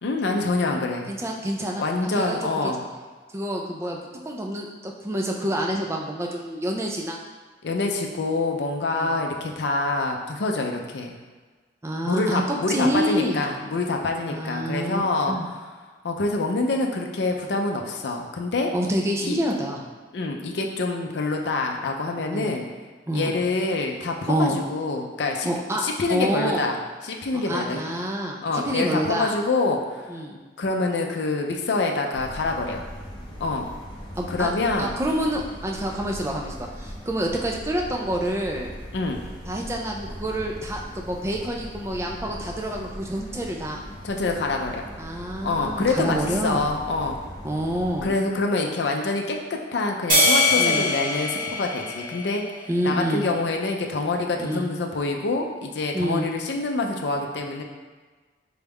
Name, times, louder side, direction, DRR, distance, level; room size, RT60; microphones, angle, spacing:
voice 1, 0.0-1.1 1.8-2.8 7.6-11.1 12.0-15.4 16.0-18.7 19.2-19.4 20.1-22.6 23.1-25.5 25.7-26.8 27.0-27.8 28.4-30.1 30.6-32.8 33.4-33.7 34.3-34.9 38.9-39.2 44.0-44.8 45.4-47.2 48.0-52.4 52.8-57.6, left 3 dB, 70° left, 2 dB, 0.4 m, -26 dB
voice 2, 1.1-1.8 2.1-2.7 3.3-7.2 8.9-9.2 11.8-12.4 12.7-13.4 14.3-15.0 15.3-15.5 18.7-19.8 22.3-22.5 23.1-23.3 24.3-24.6 25.4-25.8 26.1-26.7 27.3-29.3 30.1-30.4 34.2-34.5 34.8-38.7 39.5-43.8 45.0-46.7 47.4-48.1 50.6-50.8 52.7-53.3 54.4-54.7 55.9-56.3, equal, 15° right, 0 dB, 0.3 m, -27 dB
sound 1, 32.1-48.1, equal, 25° left, 0.6 m, -39 dB
sound 2, 50.1-52.7, left 2 dB, 45° right, 1.0 m, -22 dB
4.1 x 2.3 x 3.4 m, 1.4 s
head